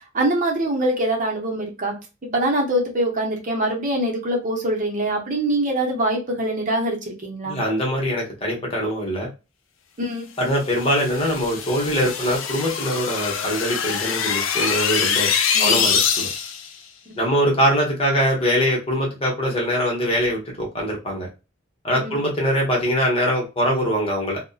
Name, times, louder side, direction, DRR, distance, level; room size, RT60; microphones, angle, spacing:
voice 1, 0.0-1.9 2.2-7.6 10.0-10.3 15.5-15.8 17.1-17.2 22.0-22.1, right 1 dB, 40° right, 0 dB, 0.7 m, -24 dB
voice 2, 7.4-9.3 10.4-15.3 15.6-16.3 17.2-21.3 21.8-24.4, equal, 30° left, -1 dB, 0.8 m, -22 dB
sound 1, 10.7-16.7, left 7 dB, 80° left, 0.4 m, -24 dB
2.5 x 2.1 x 2.3 m, 0.28 s
head